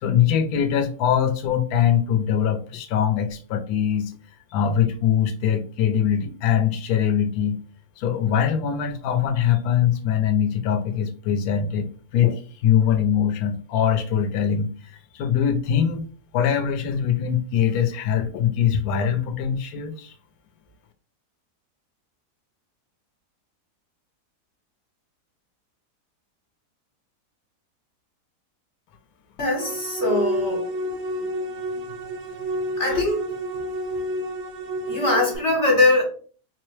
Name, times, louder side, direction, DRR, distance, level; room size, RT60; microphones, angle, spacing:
voice 1, 0.0-4.1 4.5-7.6 8.0-14.7 15.1-16.0 16.3-20.1, left 8 dB, 70° left, 7 dB, 1.0 m, -22 dB
voice 2, 29.4-30.6 32.8-33.2 34.9-36.0, left 2 dB, 50° left, -2 dB, 1.2 m, -21 dB
sound 1, 29.6-35.4, equal, 80° right, 1.1 m, -29 dB
4.0 x 2.1 x 3.1 m, 0.42 s
omnidirectional pair, 1.7 m